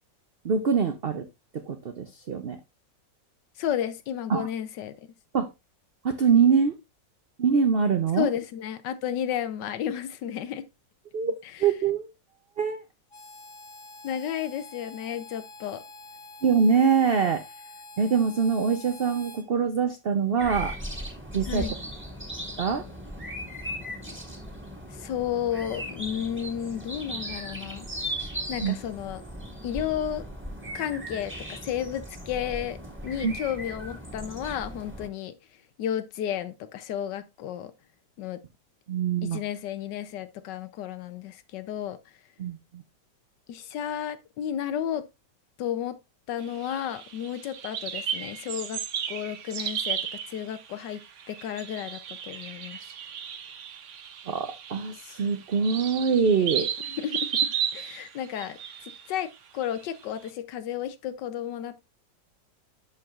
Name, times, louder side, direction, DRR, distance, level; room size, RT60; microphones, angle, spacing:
voice 1, 0.4-1.2 1.5-2.6 4.3-4.5 5.3-5.5 6.0-6.8 7.4-8.3 11.1-11.3 11.6-12.1 12.6-12.8 16.4-17.4 18.0-20.7 21.3-21.7 22.6-22.8 28.6-28.8 33.2-33.3 38.9-39.4 42.4-42.8 54.3-56.7, right 6 dB, 80° right, 0.5 m, -24 dB
voice 2, 3.6-4.9 8.1-10.6 11.4-11.7 14.0-15.8 21.5-21.7 24.9-27.9 28.5-29.2 29.6-30.2 30.7-32.8 33.0-35.3 35.8-37.7 38.2-38.4 39.2-42.0 43.5-45.0 45.6-46.0 46.3-48.8 49.1-50.0 50.3-51.0 51.3-52.8 56.9-58.6 58.8-61.8, left 10 dB, 75° left, 1.3 m, -32 dB
Harmonica, 13.1-19.4, left 3 dB, 45° left, 1.8 m, -46 dB
sound 1, 20.4-35.1, equal, 5° right, 1.5 m, -38 dB
sound 2, 46.4-59.8, right 8 dB, 55° right, 0.9 m, -34 dB
11.5 x 4.6 x 2.4 m
omnidirectional pair, 1.9 m